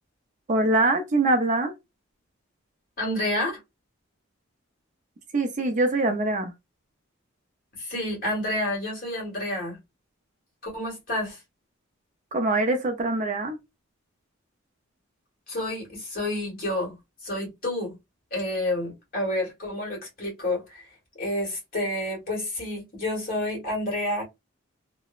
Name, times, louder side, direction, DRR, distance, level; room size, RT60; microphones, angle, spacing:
voice 1, 0.5-1.7 5.3-6.5 12.3-13.6, right 2 dB, 40° right, 0.5 m, -23 dB
voice 2, 3.0-3.6 7.8-9.8 10.6-11.4 15.5-18.0 18.3-20.9 21.2-24.2, left 1 dB, 45° left, 1.5 m, -29 dB
2.9 x 2.0 x 2.4 m
head